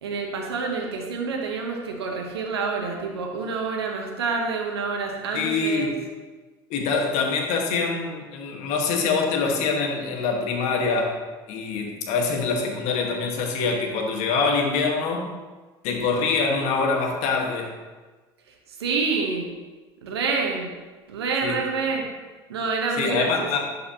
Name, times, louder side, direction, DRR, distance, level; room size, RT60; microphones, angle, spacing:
voice 1, 0.0-5.9 18.5-19.5 20.0-20.7 21.1-22.1 22.5-23.6, right 4 dB, 85° right, 1 dB, 0.9 m, -27 dB
voice 2, 5.3-5.9 6.7-11.1 11.5-15.3 15.8-17.7 21.4-21.6 23.0-23.6, left 4 dB, 60° left, 1 dB, 1.4 m, -24 dB
11.0 x 4.1 x 2.8 m, 1.3 s
hypercardioid pair, 75°, 13 cm